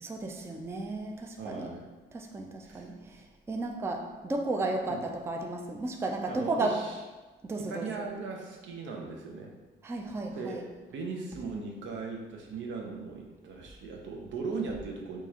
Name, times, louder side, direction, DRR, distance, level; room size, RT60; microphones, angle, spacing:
voice 1, 0.0-1.7 2.1-6.8 7.4-8.1 9.8-10.6, right 2 dB, 15° right, 3 dB, 0.3 m, -34 dB
voice 2, 1.4-1.8 2.6-2.9 4.9-5.0 6.3-6.9 7.7-9.5 10.3-10.6 10.9-15.2, right 4 dB, 70° right, 1 dB, 0.7 m, -38 dB
4.5 x 2.4 x 2.8 m, 1.2 s
cardioid pair, 90°, 20 cm